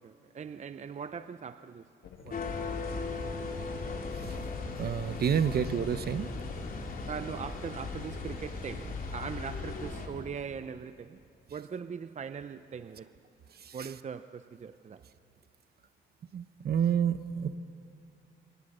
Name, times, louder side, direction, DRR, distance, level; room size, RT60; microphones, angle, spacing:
voice 1, 0.0-1.9 2.2-3.1 7.1-11.2 11.5-13.1 13.7-15.0, right 6 dB, 35° right, 0.6 m, -41 dB
sound 1, 2.0-7.6, left 5 dB, 65° left, 2.2 m, -50 dB
sound 2, 2.3-10.1, left 3 dB, 45° left, 3.6 m, -37 dB
voice 2, 4.8-6.3 16.3-17.6, right 8 dB, 50° right, 1.0 m, -28 dB
28.0 x 24.0 x 6.7 m
cardioid pair, 90°, 20 cm